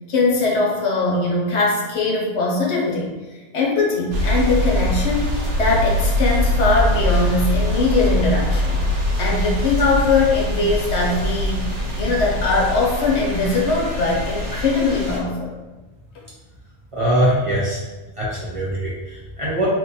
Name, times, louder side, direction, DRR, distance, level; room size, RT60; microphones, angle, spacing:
voice 1, 0.1-3.1 3.5-8.8 9.2-11.7 12.0-15.5, left 3 dB, 70° left, -2 dB, 1.0 m, -21 dB
sound 1, 4.1-15.2, left 1 dB, 85° right, 1.1 m, -22 dB
voice 2, 16.9-17.8 18.2-19.7, right 1 dB, 30° right, -6 dB, 0.7 m, -22 dB
2.9 x 2.2 x 4.0 m, 1.2 s
omnidirectional pair, 1.2 m